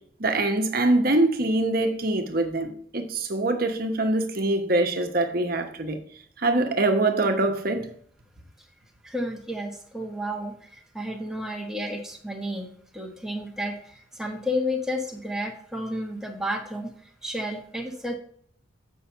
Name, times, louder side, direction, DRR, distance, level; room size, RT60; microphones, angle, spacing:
voice 1, 0.2-6.0 6.4-7.9, right 2 dB, 45° right, 1.1 m, -24 dB
voice 2, 9.0-16.9 17.2-18.2, equal, 5° right, 1.1 m, -32 dB
7.6 x 5.6 x 5.6 m
head